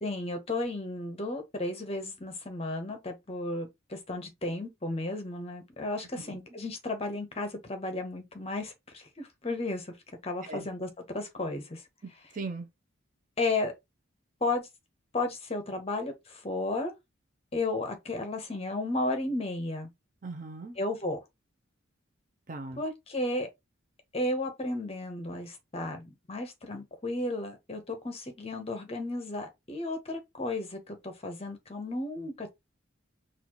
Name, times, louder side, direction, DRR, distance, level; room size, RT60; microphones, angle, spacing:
voice 1, 0.0-10.0 10.2-11.8 13.4-13.7 14.4-14.7 15.1-16.9 17.5-19.9 20.8-21.2 22.8-23.5 24.1-32.5, left 2 dB, 30° left, 0.8 m, -33 dB
voice 2, 6.0-6.4 10.5-10.7 12.0-12.7 20.2-20.8 22.5-22.8, right 3 dB, 40° right, 0.6 m, -39 dB
4.1 x 2.5 x 2.9 m
head